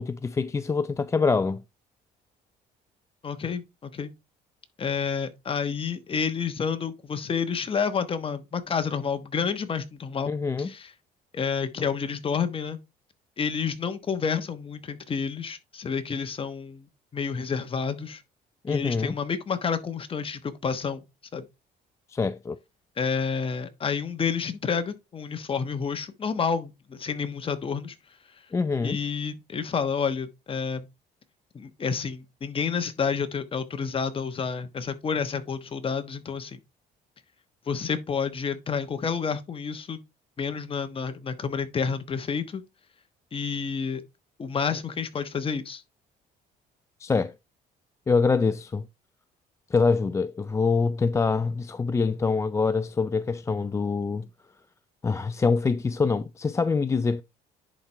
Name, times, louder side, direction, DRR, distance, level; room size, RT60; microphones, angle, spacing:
voice 1, 0.0-1.6 10.3-10.7 18.6-19.1 22.1-22.6 28.5-29.0 47.0-47.3 48.1-48.9 49.7-54.3 55.0-57.2, left 4 dB, 15° left, 0.3 m, -25 dB
voice 2, 3.2-4.1 4.8-10.3 10.6-10.9 11.3-12.8 13.4-18.2 18.7-21.0 21.3-21.4 23.0-27.9 28.8-30.9 31.5-36.6 37.7-40.0 40.4-42.6 43.3-44.0 44.4-45.8, left 6 dB, 30° left, 1.2 m, -29 dB
10.5 x 4.4 x 3.3 m
cardioid pair, 110°, 17 cm